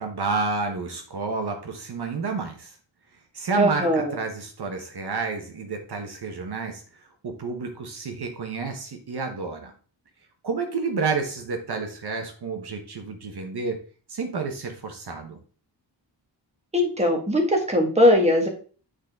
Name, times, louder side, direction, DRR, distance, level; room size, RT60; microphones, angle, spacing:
voice 1, 0.0-2.8 3.3-9.7 10.4-13.8 14.1-15.4, right 4 dB, 60° right, 4 dB, 1.1 m, -30 dB
voice 2, 3.6-4.2 16.7-18.5, left 1 dB, 15° right, 1 dB, 1.6 m, -20 dB
9.5 x 3.9 x 3.6 m, 0.39 s
wide cardioid pair, 175°, 44 cm